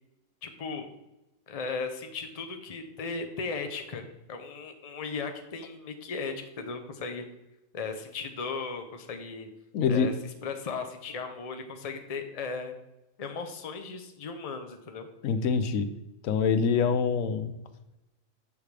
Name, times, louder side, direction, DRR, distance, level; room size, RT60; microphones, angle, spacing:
voice 1, 0.4-0.9 1.5-4.0 4.3-7.3 7.7-9.5 9.9-10.1 10.4-12.7 13.2-15.1, left 4 dB, 35° left, 6 dB, 0.7 m, -36 dB
voice 2, 9.7-10.1 15.2-15.9 16.2-17.5, left 6 dB, 85° left, 11 dB, 1.1 m, -25 dB
8.3 x 6.7 x 3.3 m, 0.94 s
omnidirectional pair, 1.4 m